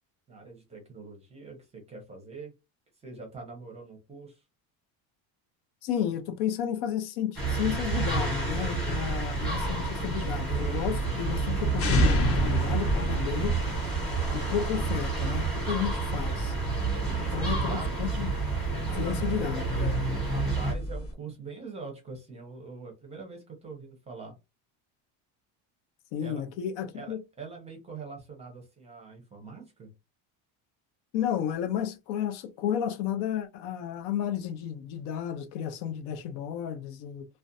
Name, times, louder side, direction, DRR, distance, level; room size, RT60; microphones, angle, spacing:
voice 1, 0.3-2.5 3.0-4.4 17.0-18.2 20.3-24.3 26.2-26.4 26.9-29.9, right 4 dB, 15° right, 0.6 m, -43 dB
voice 2, 5.8-13.6 14.3-16.5 17.3-18.3 19.0-20.0 26.1-27.2 31.1-37.3, left 9 dB, 70° left, 0.7 m, -32 dB
sound 1, 7.4-20.7, right 3 dB, ahead, 0.9 m, -29 dB
sound 2, 9.0-21.1, left 1 dB, 35° left, 0.6 m, -33 dB
2.4 x 2.2 x 2.5 m
cardioid pair, 160°, 41 cm